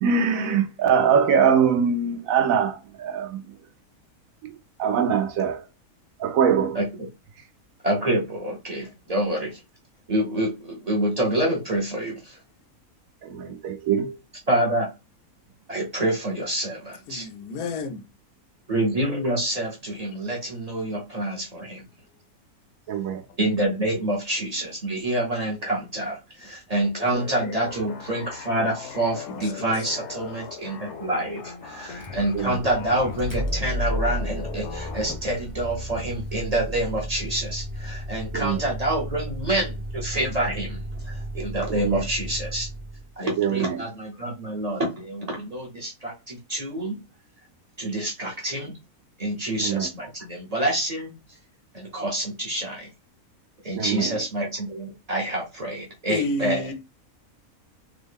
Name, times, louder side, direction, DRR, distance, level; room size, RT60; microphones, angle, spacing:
voice 1, 0.0-3.4 4.4-5.6 6.2-6.8 13.2-14.2 22.9-23.2 32.3-32.7 38.3-38.7 41.7-42.1 43.4-43.8 49.6-49.9 53.8-54.2, right 7 dB, 70° right, 1.0 m, -23 dB
voice 2, 7.8-9.6 10.1-12.4 14.5-14.9 15.7-17.3 18.7-21.8 23.4-40.8 41.0-42.7 43.2-47.0 47.8-48.7 49.2-51.1 51.7-52.9 53.6-56.6, right 1 dB, 35° right, 0.7 m, -27 dB
voice 3, 17.1-18.0 23.3-23.4 27.0-27.1 29.3-29.9 56.1-56.7, left 3 dB, 85° left, 1.1 m, -31 dB
sound 1, 27.1-35.1, left 7 dB, 60° left, 0.8 m, -39 dB
Motor vehicle (road), 31.9-43.1, equal, 10° left, 0.6 m, -33 dB
3.6 x 2.1 x 3.5 m
omnidirectional pair, 1.6 m